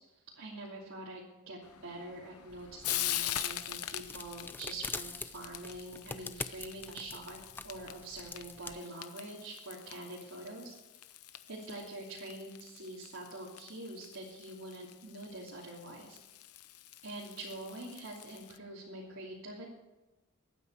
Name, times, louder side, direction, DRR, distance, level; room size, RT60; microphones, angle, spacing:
voice 1, 0.4-7.4 7.6-10.7 11.5-16.2 17.0-19.7, right 2 dB, 70° right, -6 dB, 3.0 m, -45 dB
Frying (food), 1.6-18.6, left 13 dB, 90° left, 0.8 m, -43 dB
sound 1, 2.5-8.8, left 3 dB, 10° left, 0.4 m, -45 dB
23.0 x 9.4 x 4.8 m, 1.1 s
head